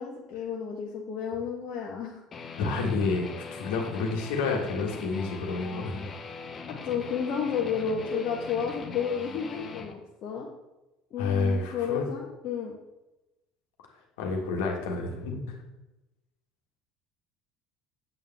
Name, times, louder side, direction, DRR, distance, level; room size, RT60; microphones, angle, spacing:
voice 1, 0.0-2.2 6.7-10.5 11.1-12.7, left 7 dB, 50° left, -2 dB, 1.2 m, -31 dB
Guitar, 2.3-9.9, left 5 dB, 30° left, 1.1 m, -41 dB
voice 2, 2.6-6.1 11.2-12.1 14.2-15.6, left 3 dB, 65° left, 1 dB, 1.8 m, -29 dB
8.9 x 8.3 x 3.5 m, 1.0 s
figure-of-eight pair, 65°, 0 cm